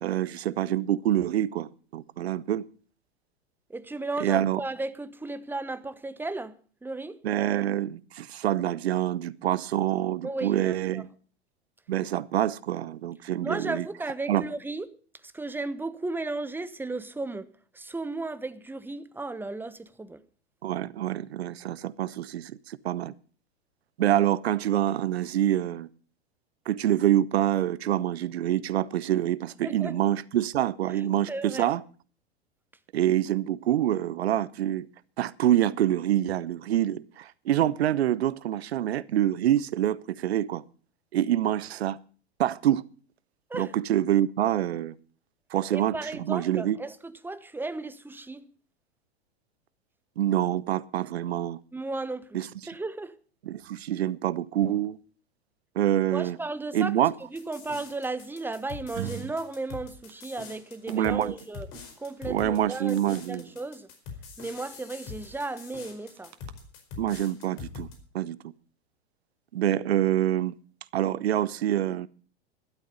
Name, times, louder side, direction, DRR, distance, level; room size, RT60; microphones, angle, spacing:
voice 1, 0.0-2.6 4.2-4.6 7.2-11.1 11.9-13.9 14.3-14.4 20.6-23.1 24.0-25.9 26.7-31.8 32.9-34.9 35.2-40.6 41.1-42.0 42.4-42.9 43.5-44.9 45.5-46.8 50.2-51.6 52.3-52.5 53.5-55.0 55.8-56.4 56.7-57.1 60.9-61.3 62.3-63.5 67.0-67.9 68.1-68.4 69.5-70.5 70.9-72.1, right 12 dB, 75° right, 0.9 m, -26 dB
voice 2, 3.7-6.5 6.8-7.2 10.2-11.1 13.4-14.9 15.3-17.5 17.7-20.2 29.6-29.9 31.3-31.7 43.5-43.7 45.7-48.5 51.7-52.4 52.7-53.2 56.1-57.0 57.3-61.7 62.0-63.0 63.3-63.9 64.4-66.3, right 3 dB, 5° right, 1.0 m, -35 dB
sound 1, 57.4-68.0, left 5 dB, 40° left, 4.7 m, -43 dB
sound 2, 58.9-59.4 59.9-60.2 60.9-61.0 61.6-61.7 61.9-62.0 62.6-62.7 63.0-63.4 64.5-64.6 64.8-65.1 66.2-66.5, right 10 dB, 55° right, 1.8 m, -37 dB
13.0 x 12.0 x 5.3 m
hypercardioid pair, 95°, 32 cm